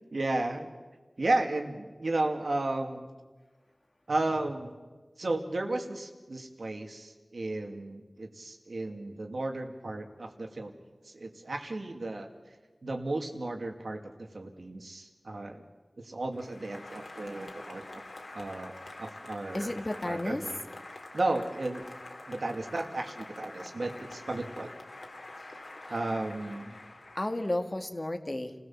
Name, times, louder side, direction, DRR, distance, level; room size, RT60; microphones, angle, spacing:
voice 1, 0.1-0.7 1.2-3.1 4.1-4.7 5.2-10.7 11.0-12.3 12.8-15.6 16.0-18.0 18.3-19.8 20.0-20.6 21.1-21.9 22.3-24.7 25.4-25.5 25.9-26.8, right 2 dB, 90° right, 4 dB, 2.4 m, -34 dB
Applause, 16.3-27.8, left 2 dB, 70° left, 2.9 m, -46 dB
voice 2, 19.5-20.4 27.2-28.5, left 1 dB, 35° left, 7 dB, 1.9 m, -32 dB
29.5 x 16.5 x 7.3 m, 1.3 s
wide cardioid pair, 65°, 0 cm